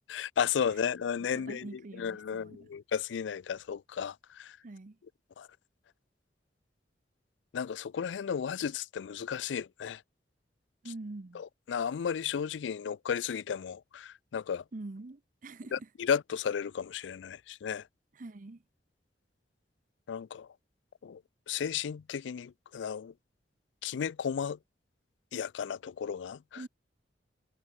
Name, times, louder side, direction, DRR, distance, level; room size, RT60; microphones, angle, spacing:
voice 1, 0.1-1.7 2.0-4.6 5.4-5.5 7.5-10.0 11.7-14.6 15.7-17.8 20.1-20.5 21.0-21.2 21.5-23.1 23.8-24.6 25.3-26.4, left 7 dB, 90° left, 0.4 m, -34 dB
voice 2, 1.2-2.7 4.6-5.0 10.8-11.4 14.7-15.9 18.1-18.6 26.5-26.7, right 2 dB, 45° right, 0.7 m, -45 dB
head